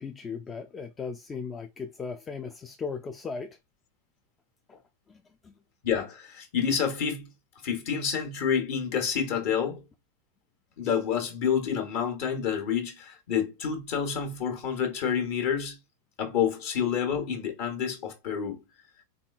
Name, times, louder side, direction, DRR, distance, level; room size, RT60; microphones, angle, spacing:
voice 1, 0.0-3.6 5.1-5.5, left 5 dB, 20° left, 0.4 m, -37 dB
voice 2, 5.8-7.3 7.6-9.8 10.8-15.8 16.2-18.6, left 7 dB, 45° left, 1.1 m, -28 dB
4.0 x 3.4 x 2.3 m
figure-of-eight pair, 90°, 0 cm